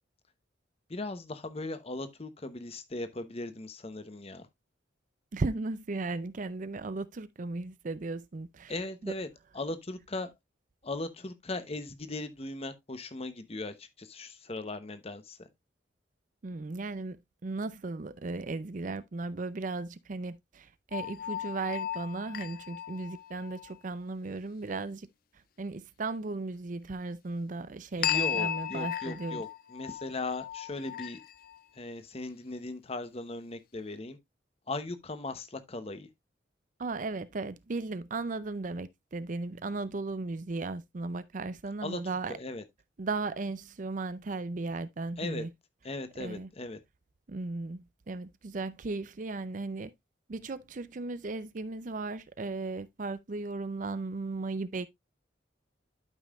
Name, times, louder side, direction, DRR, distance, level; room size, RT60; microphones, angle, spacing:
voice 1, 0.9-4.5 8.7-9.3 9.5-10.3 10.8-15.5 28.0-31.2 31.8-34.2 34.7-36.1 41.8-42.0 42.3-42.6 45.2-45.4 45.8-46.8, left 2 dB, 30° left, 0.9 m, -38 dB
voice 2, 5.3-8.7 9.0-9.1 16.4-25.1 25.6-29.4 36.8-42.3 43.0-45.5 46.2-46.5 47.3-49.9 50.3-54.9, right 3 dB, 45° right, 0.5 m, -36 dB
sound 1, 20.9-23.8 28.0-31.6, left 10 dB, 50° left, 0.4 m, -35 dB
12.0 x 5.5 x 2.4 m
head